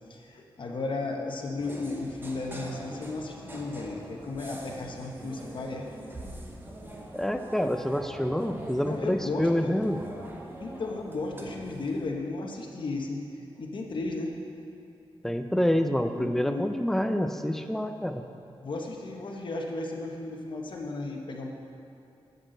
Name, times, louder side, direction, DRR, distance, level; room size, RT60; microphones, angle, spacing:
voice 1, 0.1-5.9 8.8-9.9 10.6-13.2 13.5-14.4 16.2-16.7 18.6-21.5, left 3 dB, 55° left, 1 dB, 1.0 m, -34 dB
sound 1, 1.6-12.1, right 1 dB, 20° right, 0.8 m, -43 dB
voice 2, 7.1-10.0 15.2-18.2, equal, 5° left, 7 dB, 0.4 m, -27 dB
10.5 x 8.0 x 3.9 m, 2.6 s
wide cardioid pair, 175°, 10 cm